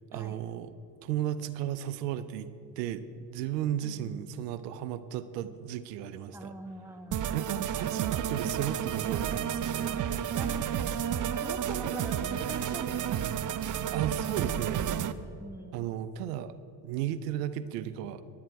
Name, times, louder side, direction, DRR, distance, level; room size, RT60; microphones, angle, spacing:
voice 1, 0.1-0.7 1.0-2.5 2.8-6.5 7.3-10.0 13.9-15.0 15.7-16.6 16.8-18.2, right 11 dB, 85° right, 13 dB, 0.7 m, -34 dB
voice 2, 3.8-4.1 6.3-7.3 9.8-10.9 11.4-13.2 14.2-14.4 15.2-15.9, right 1 dB, 5° right, 6 dB, 1.5 m, -44 dB
sound 1, 7.1-15.1, right 9 dB, 40° right, 0.7 m, -31 dB
16.0 x 11.5 x 4.7 m, 2.9 s
supercardioid pair, 75°, 47 cm